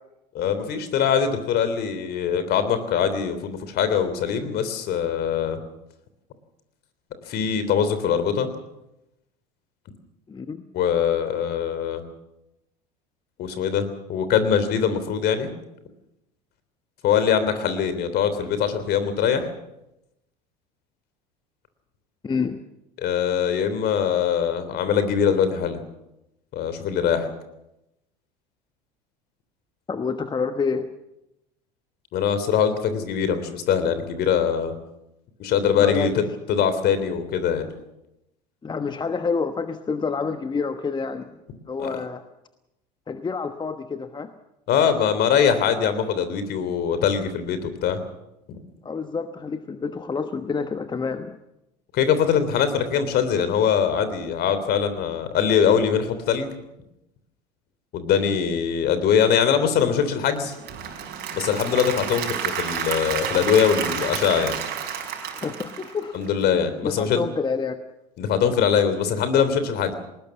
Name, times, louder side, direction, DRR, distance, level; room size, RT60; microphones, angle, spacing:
voice 1, 0.4-5.6 7.3-8.5 10.7-12.0 13.4-15.5 17.0-19.5 23.0-25.8 26.5-27.3 32.1-34.7 35.4-36.1 36.5-37.7 41.8-42.0 44.7-48.0 48.5-48.6 51.9-56.5 57.9-60.5 61.3-64.6 66.1-67.2 68.2-69.9, left 7 dB, 50° left, 11 dB, 3.3 m, -22 dB
voice 2, 10.3-10.6 22.2-22.6 29.9-30.9 35.7-36.1 38.6-41.3 41.7-42.2 43.1-44.3 48.8-51.4 65.4-66.2 66.8-67.8, left 5 dB, 20° left, 9 dB, 1.2 m, -28 dB
Applause / Crowd, 60.4-66.4, right 8 dB, 50° right, 5.1 m, -30 dB
20.0 x 19.5 x 7.3 m, 0.89 s
hypercardioid pair, 75°, 21 cm